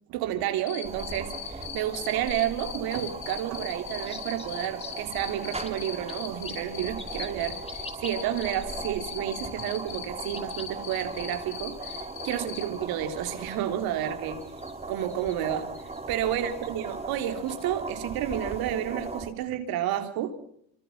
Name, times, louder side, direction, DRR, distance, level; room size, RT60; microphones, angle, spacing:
voice 1, 0.1-14.4 14.9-15.7 16.1-20.4, right 11 dB, 75° right, 7 dB, 3.5 m, -31 dB
Cricket, 0.7-12.6, left 11 dB, 75° left, 7.8 m, -38 dB
sound 1, 0.8-19.3, right 3 dB, 15° right, 3.4 m, -39 dB
sound 2, 3.7-18.0, left 2 dB, 15° left, 5.0 m, -50 dB
26.0 x 26.0 x 6.0 m, 0.70 s
cardioid pair, 100°, 36 cm